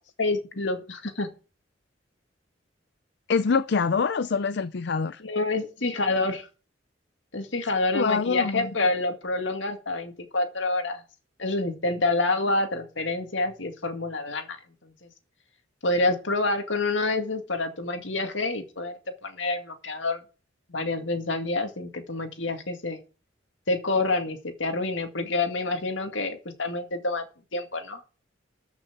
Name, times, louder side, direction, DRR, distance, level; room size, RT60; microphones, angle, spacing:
voice 1, 0.2-1.3 5.2-6.5 7.3-11.0 11.4-14.6 14.8-15.1 15.8-20.2 20.7-23.0 23.7-27.3 27.5-28.0, left 2 dB, 80° left, 2.1 m, -27 dB
voice 2, 3.3-5.2 7.9-8.7, left 5 dB, 65° left, 0.5 m, -25 dB
13.5 x 6.0 x 6.0 m
head